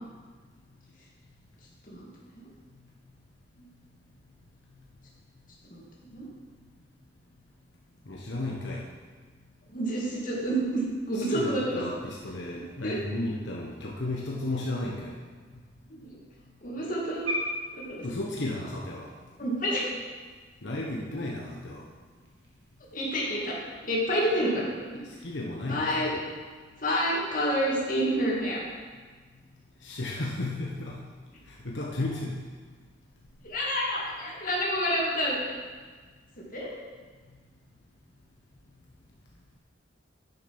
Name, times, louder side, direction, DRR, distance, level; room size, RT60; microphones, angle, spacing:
voice 1, 5.7-6.2 9.7-11.8 12.8-13.0 15.9-16.0 16.6-17.3 17.9-18.0 19.4-19.8 22.9-23.5 23.9-24.7 24.9-25.0 25.7-26.1 26.8-28.6 33.4-35.4 36.5-36.7, equal, 45° left, -5 dB, 2.5 m, -28 dB
voice 2, 8.1-8.8 11.1-15.1 18.0-19.1 20.6-21.9 25.0-26.3 29.8-31.0 31.5-32.4, left 2 dB, 80° left, -4 dB, 1.2 m, -34 dB
sound 1, 17.1-23.2, left 1 dB, 80° right, 2.3 m, -41 dB
9.9 x 7.4 x 5.6 m, 1.5 s
head